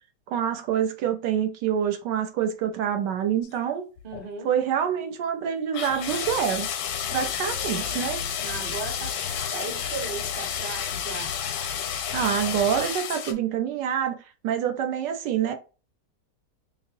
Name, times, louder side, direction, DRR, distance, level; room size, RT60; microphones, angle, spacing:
voice 1, 0.3-3.8 4.4-6.7 7.1-8.2 12.1-14.2 14.4-15.5, right 9 dB, 85° right, 1.4 m, -26 dB
sound 1, 3.4-3.6 4.0-4.3 5.7-13.3, left 8 dB, 85° left, 1.3 m, -31 dB
voice 2, 4.0-4.5 8.4-9.2 9.5-11.4, right 4 dB, 40° right, 0.8 m, -36 dB
5.5 x 2.0 x 2.6 m
omnidirectional pair, 1.8 m